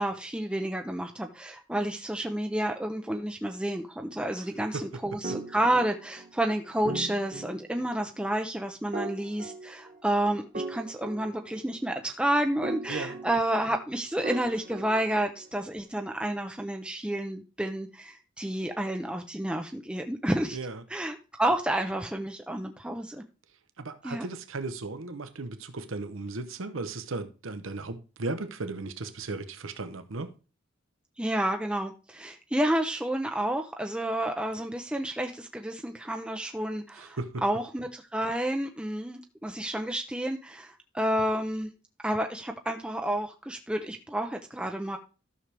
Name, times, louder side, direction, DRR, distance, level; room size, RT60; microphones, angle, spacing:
voice 1, 0.0-20.6 20.9-23.2 24.0-24.3 31.2-41.7 42.0-45.0, right 1 dB, 5° right, 0.5 m, -30 dB
sound 1, 5.2-6.4 6.9-8.0 8.9-10.1 10.5-11.9 12.6-13.8 14.2-15.6, right 2 dB, 45° right, 1.4 m, -39 dB
voice 2, 20.5-20.8 23.8-30.3 37.0-37.4, right 3 dB, 85° right, 0.9 m, -36 dB
12.5 x 6.3 x 3.4 m
head